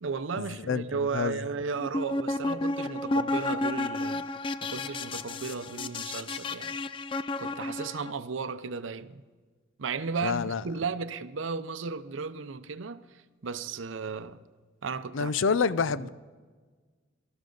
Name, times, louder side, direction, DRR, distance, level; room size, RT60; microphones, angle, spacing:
voice 1, 0.0-4.3 4.6-6.8 7.4-9.2 9.8-14.4 14.8-15.4 15.8-16.1, right 5 dB, 80° right, 0.6 m, -35 dB
sound 1, 1.8-8.1, left 2 dB, 25° left, 0.3 m, -32 dB
voice 2, 10.2-10.6 15.1-16.1, left 5 dB, 80° left, 0.5 m, -27 dB
19.5 x 12.5 x 3.9 m
head